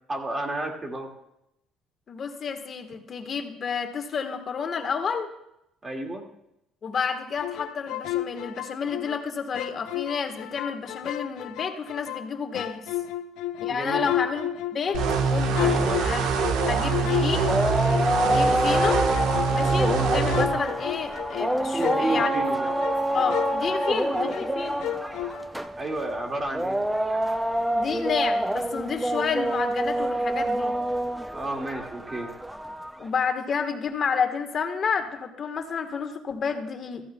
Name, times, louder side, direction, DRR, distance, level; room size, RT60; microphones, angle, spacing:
voice 1, 0.1-1.1 5.8-6.2 13.7-14.1 15.6-16.0 21.7-22.7 25.8-26.8 31.3-32.3, right 2 dB, 25° right, 2 dB, 2.1 m, -31 dB
voice 2, 2.1-5.3 6.8-12.9 13.6-15.0 15.2-16.2 16.6-17.5 18.2-19.0 19.5-22.3 23.1-24.8 27.7-30.7 33.0-37.0, left 6 dB, 45° left, 6 dB, 1.4 m, -30 dB
sound 1, 7.4-9.2 9.5-12.3 12.5-18.4 18.8-24.5 24.8-25.7, left 13 dB, 80° left, 0.4 m, -32 dB
sound 2, 14.9-20.5, right 5 dB, 80° right, 1.2 m, -24 dB
sound 3, 16.7-33.1, right 1 dB, 5° right, 0.5 m, -27 dB
14.5 x 14.5 x 2.3 m, 0.83 s
cardioid pair, 100°, 0 cm